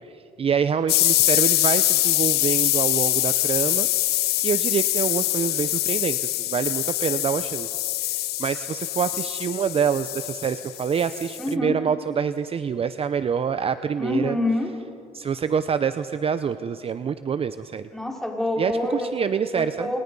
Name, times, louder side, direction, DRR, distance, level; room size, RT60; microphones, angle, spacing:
voice 1, 0.4-7.7 8.0-14.4 15.1-17.9 18.6-19.9, right 7 dB, 35° right, 12 dB, 0.7 m, -26 dB
sound 1, 0.9-11.5, left 16 dB, 70° left, 0.5 m, -24 dB
voice 2, 11.4-11.8 14.0-14.7 17.9-19.1 19.5-20.0, left 1 dB, ahead, 0 dB, 4.2 m, -26 dB
28.5 x 27.5 x 5.4 m, 2.6 s
cardioid pair, 110°, 17 cm